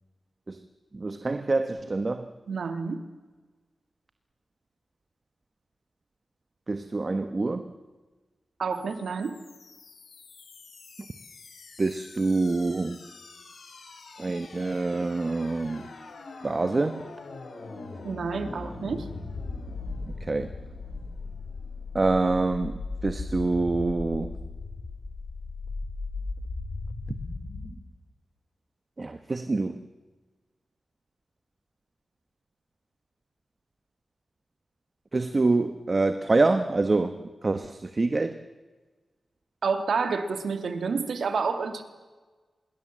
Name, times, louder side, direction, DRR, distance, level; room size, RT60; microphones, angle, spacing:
voice 1, 0.9-2.3 6.7-7.7 11.8-13.0 14.2-15.9 16.4-17.2 20.2-20.5 21.9-24.4 29.0-29.9 35.1-38.4, right 3 dB, 30° right, 9 dB, 1.1 m, -26 dB
voice 2, 2.5-3.0 8.6-9.4 18.0-19.1 39.6-41.8, right 5 dB, 80° right, 8 dB, 2.4 m, -29 dB
sound 1, 8.7-27.7, left 3 dB, 90° left, 6.0 m, -39 dB
26.0 x 22.5 x 7.5 m, 1.3 s
wide cardioid pair, 145°, 0 cm